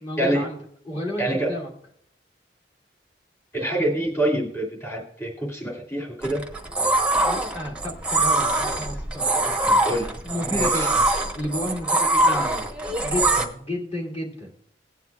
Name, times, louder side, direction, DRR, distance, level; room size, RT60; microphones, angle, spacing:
voice 1, 0.0-0.6 0.8-1.7 7.2-11.0 11.3-12.7 13.0-14.5, left 1 dB, 35° left, -3 dB, 2.3 m, -32 dB
voice 2, 1.2-1.5 3.5-6.4 9.9-10.1 10.4-10.9, right 1 dB, 15° left, -3 dB, 2.3 m, -26 dB
sound 1, 6.2-13.4, right 2 dB, 5° right, 1.0 m, -23 dB
18.0 x 9.4 x 2.4 m, 0.66 s
head